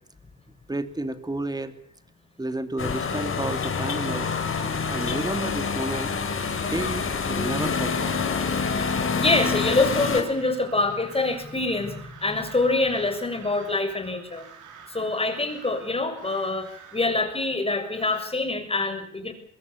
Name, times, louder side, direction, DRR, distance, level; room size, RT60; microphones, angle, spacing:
voice 1, 0.7-1.7 2.4-4.3 4.9-6.1 6.5-8.2, right 2 dB, 15° right, 9 dB, 2.9 m, -31 dB
sound 1, 2.8-10.2, left 5 dB, 45° left, 4.7 m, -27 dB
Crow, 4.1-18.3, right 6 dB, 85° right, 6.1 m, -48 dB
voice 2, 8.6-14.4 14.9-19.3, left 2 dB, 20° left, 6 dB, 6.7 m, -25 dB
24.0 x 22.0 x 7.4 m, 0.68 s
cardioid pair, 90°, 30 cm